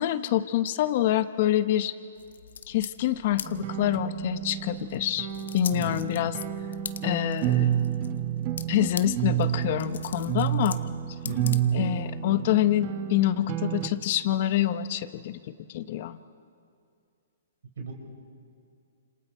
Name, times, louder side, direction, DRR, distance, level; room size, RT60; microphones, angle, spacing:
voice 1, 0.0-1.9 2.7-5.3 5.5-6.4 7.0-8.0 8.7-10.8 11.2-15.4 15.7-16.2, left 12 dB, 40° left, 13 dB, 0.8 m, -26 dB
sound 1, 2.2-12.1, left 7 dB, 85° left, 1.0 m, -43 dB
sound 2, 3.4-13.9, right 11 dB, 30° right, 0.9 m, -30 dB
voice 2, 11.2-11.6 17.8-17.9, right 4 dB, 70° right, 0 dB, 4.6 m, -34 dB
30.0 x 27.5 x 4.5 m, 2.4 s
hypercardioid pair, 165°, 0 cm